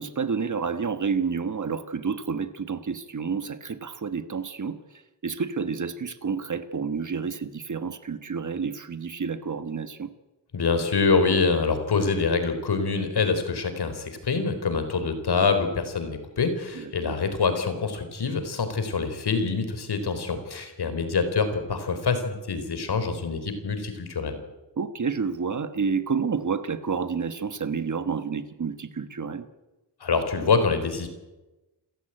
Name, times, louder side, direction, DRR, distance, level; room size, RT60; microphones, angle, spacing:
voice 1, 0.0-4.8 5.2-10.1 16.7-17.1 24.8-29.5, right 5 dB, 40° right, 11 dB, 1.4 m, -29 dB
voice 2, 10.5-24.4 30.0-31.1, left 4 dB, 60° left, 9 dB, 4.0 m, -25 dB
28.5 x 15.0 x 9.0 m, 1.1 s
wide cardioid pair, 165°, 44 cm